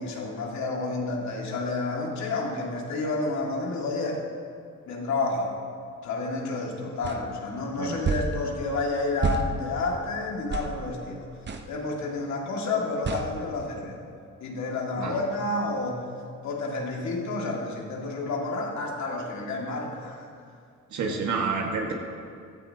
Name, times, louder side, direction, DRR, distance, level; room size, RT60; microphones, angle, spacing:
voice 1, 0.0-4.2 4.9-5.5 6.0-11.3 11.7-14.0 14.4-16.1 16.4-20.2 21.1-21.2, left 3 dB, 65° left, -1 dB, 2.2 m, -30 dB
sound 1, 7.0-7.2 8.0-8.3 9.2-9.5 10.5-10.7 11.5-11.7 13.0-13.3, right 4 dB, 35° right, 0.9 m, -27 dB
voice 2, 20.9-21.9, right 5 dB, 70° right, 1 dB, 1.8 m, -28 dB
15.5 x 12.0 x 2.9 m, 2.3 s
cardioid pair, 90°, 30 cm